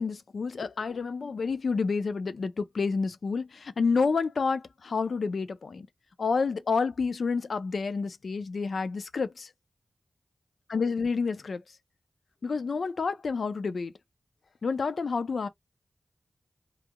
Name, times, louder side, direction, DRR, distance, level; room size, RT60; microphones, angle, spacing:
voice 1, 0.0-5.9 6.2-9.5 10.7-11.6 12.4-13.9 14.6-15.5, left 4 dB, 85° left, 0.4 m, -29 dB
2.4 x 2.2 x 2.9 m
wide cardioid pair, 60°, 0 cm